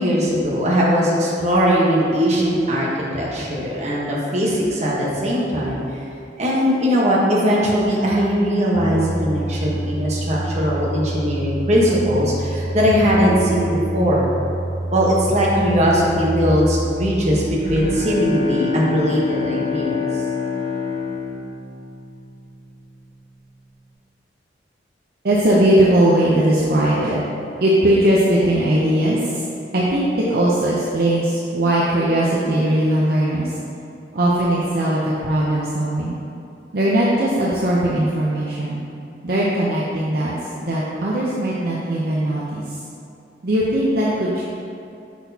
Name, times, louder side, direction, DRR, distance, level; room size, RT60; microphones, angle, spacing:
voice 1, 0.0-2.9 3.1-6.0 6.4-14.3 14.9-20.0, equal, 40° right, -5 dB, 1.1 m, -19 dB
sound 1, 8.7-18.0, right 1 dB, 15° right, 0.6 m, -27 dB
Bowed string instrument, 17.5-22.7, left 5 dB, 75° left, 0.9 m, -27 dB
voice 2, 25.2-27.2 27.6-29.5 29.7-33.6 34.1-36.2 36.7-38.8 39.2-42.8 43.4-44.4, right 1 dB, 55° right, -6 dB, 0.6 m, -19 dB
6.2 x 6.0 x 2.8 m, 2.6 s
head